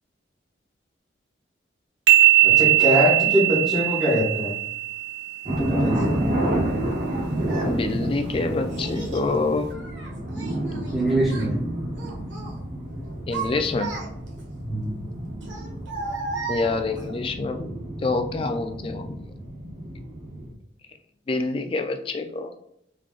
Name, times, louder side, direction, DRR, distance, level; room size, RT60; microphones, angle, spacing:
sound 1, 2.1-5.6, right 15 dB, 60° right, 0.4 m, -19 dB
voice 1, 2.4-4.5 5.4-6.2 10.9-11.6 14.6-15.0, equal, ahead, -12 dB, 1.5 m, -23 dB
sound 2, 5.4-20.5, right 1 dB, 45° right, 0.8 m, -30 dB
Child speech kid speaking, 5.9-6.1 7.0-7.8 8.7-9.3 9.7-11.0 11.2-11.5 11.9-12.5 13.0-14.4 15.4-17.1, right 4 dB, 80° right, 1.1 m, -35 dB
voice 2, 7.6-9.8 13.3-13.9 16.5-17.7 18.0-19.2 21.3-22.5, left 3 dB, 30° left, 7 dB, 0.3 m, -26 dB
3.7 x 3.3 x 2.4 m, 0.75 s
head